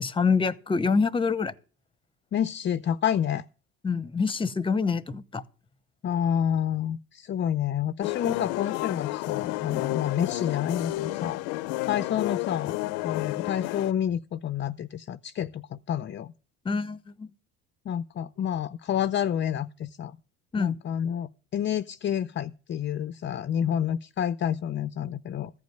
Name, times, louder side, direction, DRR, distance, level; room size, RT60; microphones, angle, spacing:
voice 1, 0.0-1.5 3.8-5.4 16.6-17.3 20.5-20.7, left 5 dB, 15° left, 0.8 m, -26 dB
voice 2, 2.3-3.4 6.0-11.6 11.9-16.3 17.9-20.2 20.6-25.5, left 9 dB, 30° left, 0.5 m, -29 dB
sound 1, 8.0-13.9, left 19 dB, 90° left, 0.7 m, -31 dB
14.5 x 5.3 x 9.2 m
cardioid pair, 105°, 35 cm